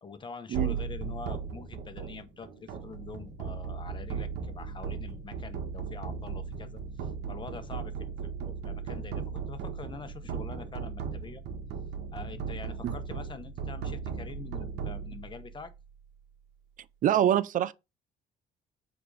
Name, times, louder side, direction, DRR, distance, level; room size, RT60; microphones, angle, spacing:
voice 1, 0.0-11.4 12.1-15.7, left 5 dB, 30° left, 1.2 m, -45 dB
sound 1, 0.5-15.8, right 6 dB, 80° right, 1.7 m, -37 dB
voice 2, 17.0-17.7, right 11 dB, 50° right, 0.5 m, -25 dB
7.8 x 3.8 x 4.9 m
cardioid pair, 110°, 17 cm